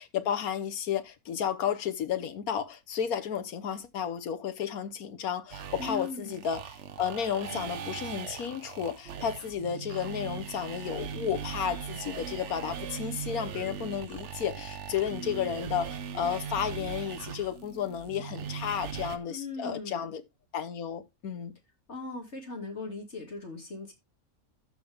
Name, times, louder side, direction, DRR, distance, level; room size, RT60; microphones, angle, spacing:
voice 1, 0.0-20.2 20.5-21.5, left 8 dB, 80° left, 1.5 m, -32 dB
sound 1, 5.5-19.2, right 7 dB, 55° right, 1.1 m, -39 dB
voice 2, 5.8-6.4 19.3-20.1 21.9-23.9, left 3 dB, 50° left, 2.9 m, -39 dB
13.0 x 5.9 x 3.5 m
omnidirectional pair, 1.5 m